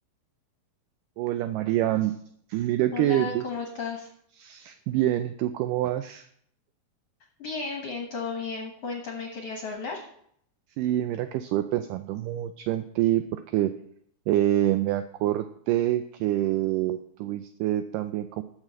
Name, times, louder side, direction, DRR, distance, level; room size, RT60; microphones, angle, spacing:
voice 1, 1.2-2.1 2.5-3.4 4.4-6.3 10.8-13.2 13.5-13.7 14.3-18.4, right 13 dB, 85° right, 9 dB, 1.9 m, -26 dB
voice 2, 2.9-4.1 7.4-10.0, left 4 dB, 55° left, 2 dB, 1.8 m, -34 dB
12.5 x 4.9 x 7.5 m, 0.67 s
omnidirectional pair, 4.3 m